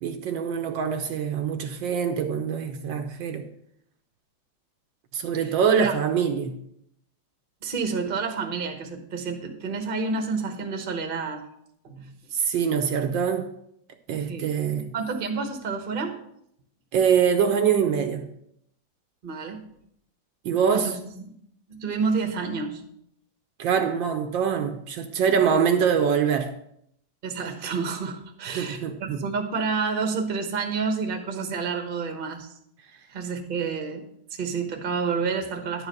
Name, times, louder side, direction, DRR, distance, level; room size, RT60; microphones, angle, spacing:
voice 1, 0.0-3.4 5.1-6.6 12.3-13.5 14.1-14.9 16.9-18.3 20.4-20.9 23.6-26.5 28.5-29.2, right 7 dB, 70° right, 1.4 m, -24 dB
voice 2, 7.6-11.5 11.8-12.1 14.3-14.5 14.9-16.2 19.2-19.7 20.7-21.3 21.7-22.8 27.2-32.5 33.1-35.9, right 5 dB, 35° right, 1.0 m, -29 dB
10.5 x 4.9 x 6.5 m
omnidirectional pair, 2.2 m